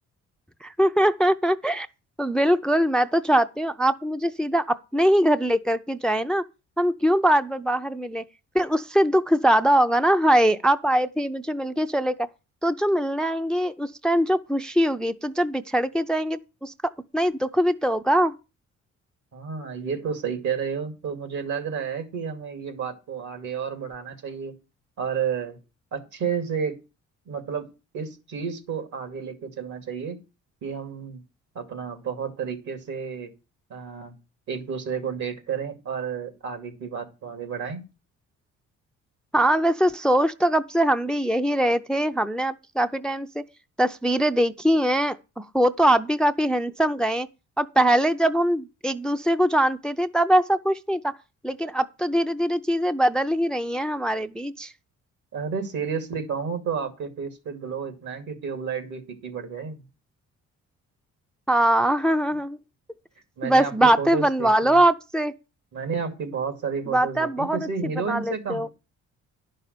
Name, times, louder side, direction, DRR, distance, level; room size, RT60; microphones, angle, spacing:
voice 1, 0.6-1.9 2.2-6.4 6.8-8.2 8.5-12.1 12.6-16.7 17.1-18.3 39.3-43.4 43.8-47.3 47.6-51.1 51.4-54.7 61.5-62.6 63.4-65.3 66.9-67.7 68.1-68.7, right 1 dB, 5° left, 0.5 m, -22 dB
voice 2, 19.3-24.6 25.0-25.6 25.9-26.8 27.3-27.7 27.9-30.2 30.6-31.2 31.5-33.3 33.7-34.1 34.5-37.8 55.3-59.9 63.4-64.8 65.7-68.7, right 6 dB, 75° right, 2.5 m, -31 dB
11.0 x 5.6 x 6.6 m
cardioid pair, 90°, 30 cm